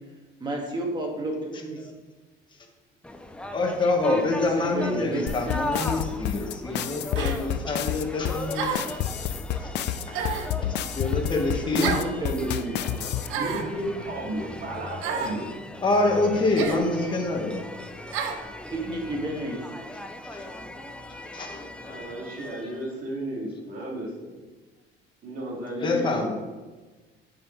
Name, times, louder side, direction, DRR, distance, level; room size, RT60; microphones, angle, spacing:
voice 1, 0.4-1.8 4.1-5.5 11.7-12.8 16.7-16.9 18.7-19.7, right 2 dB, 20° right, 0 dB, 1.7 m, -31 dB
sound 1, 3.0-22.9, left 1 dB, 5° left, 0.4 m, -38 dB
voice 2, 3.5-9.0 9.6-10.3 10.6-12.0 15.8-17.6 20.3-20.5 21.3-22.0 25.8-26.3, left 2 dB, 25° left, 1 dB, 1.2 m, -27 dB
sound 2, 5.3-13.3, left 11 dB, 60° left, 0.5 m, -29 dB
sound 3, 5.7-5.9 7.1-7.4 8.5-9.0 10.1-10.5 11.8-12.1 13.3-13.7 15.0-15.4 16.5-16.8 18.1-18.4, right 6 dB, 80° right, 0.8 m, -30 dB
voice 3, 12.2-15.5 21.5-24.4 25.2-26.3, right 1 dB, 45° right, -5 dB, 2.2 m, -34 dB
9.5 x 5.2 x 3.1 m, 1.2 s
cardioid pair, 120°, 20 cm